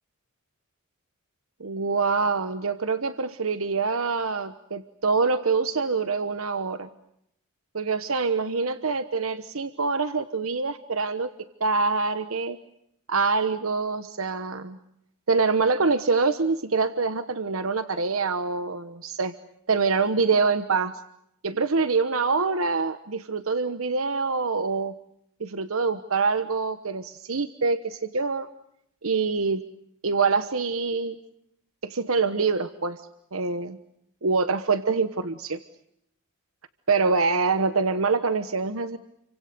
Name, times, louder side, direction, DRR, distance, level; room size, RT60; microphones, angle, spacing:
voice 1, 1.6-6.9 7.7-11.3 11.6-12.6 13.1-14.8 15.3-19.3 19.7-20.9 21.4-24.9 25.4-28.5 29.0-29.6 30.0-31.2 31.8-33.0 33.3-33.8 34.2-35.6 36.9-39.0, right 4 dB, 75° right, 11 dB, 1.2 m, -25 dB
30.0 x 25.0 x 6.9 m, 0.75 s
head